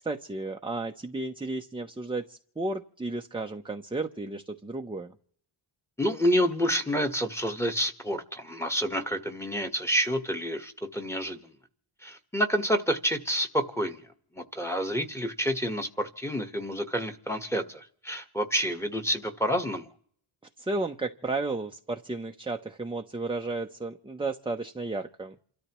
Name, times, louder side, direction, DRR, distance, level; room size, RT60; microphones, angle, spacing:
voice 1, 0.0-5.1 20.6-25.4, right 2 dB, 10° right, 0.7 m, -33 dB
voice 2, 6.0-11.5 12.0-14.0 14.3-19.9, equal, 5° left, 1.4 m, -28 dB
29.0 x 13.0 x 3.1 m
wide cardioid pair, 120°, 49 cm